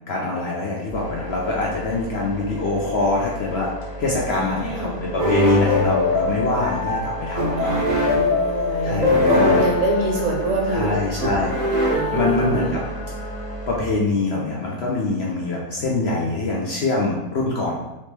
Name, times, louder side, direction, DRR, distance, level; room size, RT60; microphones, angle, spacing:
voice 1, 0.1-3.7 4.0-7.8 8.8-9.6 10.7-11.5 12.1-12.8 13.7-17.8, left 3 dB, 60° left, -3 dB, 0.7 m, -24 dB
sound 1, 0.9-13.8, right 1 dB, 20° left, 0.6 m, -34 dB
voice 2, 4.3-5.0 7.6-11.0 11.9-12.8, right 3 dB, 60° right, 0 dB, 1.1 m, -26 dB
sound 2, 5.2-12.9, left 2 dB, 40° right, 0.6 m, -22 dB
Bowed string instrument, 9.4-13.8, left 3 dB, 85° left, 0.5 m, -38 dB
4.3 x 3.1 x 3.3 m, 0.99 s
omnidirectional pair, 1.6 m